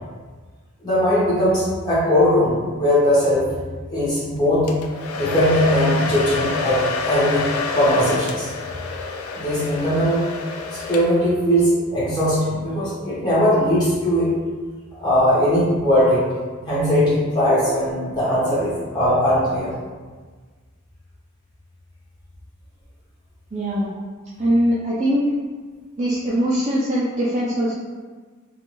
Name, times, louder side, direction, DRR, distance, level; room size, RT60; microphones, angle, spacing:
voice 1, 0.8-3.5 3.9-4.7 5.1-8.5 9.4-10.2 10.9-14.4 15.0-16.2 16.6-19.7, equal, 20° left, -10 dB, 1.0 m, -19 dB
Domestic sounds home sounds, 4.7-11.4, left 4 dB, 90° left, 0.3 m, -28 dB
voice 2, 23.5-23.9 24.4-25.2 26.0-27.8, equal, 30° right, -9 dB, 0.4 m, -21 dB
2.6 x 2.3 x 3.0 m, 1.4 s
head